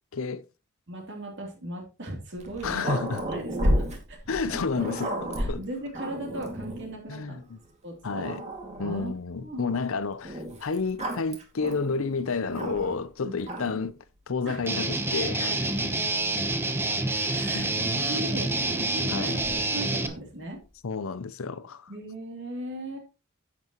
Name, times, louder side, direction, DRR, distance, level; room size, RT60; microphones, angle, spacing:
voice 1, 0.1-0.4 2.6-3.3 4.3-5.6 7.1-7.6 8.0-8.4 8.8-14.0 14.3-15.7 17.5-17.7 19.1-19.4 20.8-21.9, left 4 dB, 65° left, 0.6 m, -30 dB
voice 2, 0.9-2.9 3.3-4.6 5.4-7.4 7.8-8.4 8.8-9.8 13.2-13.4 14.4-14.7 16.9-19.4 19.7-20.6 21.9-23.0, right 1 dB, 55° right, 3.0 m, -38 dB
Growling, 2.4-6.9 7.6-7.7 8.1-9.2 10.2-13.1 13.4-13.9 14.8-16.6 17.7-20.3, equal, 30° right, 2.1 m, -34 dB
Guitar, 14.7-20.1, right 2 dB, 10° right, 0.9 m, -27 dB
10.5 x 8.3 x 3.0 m
head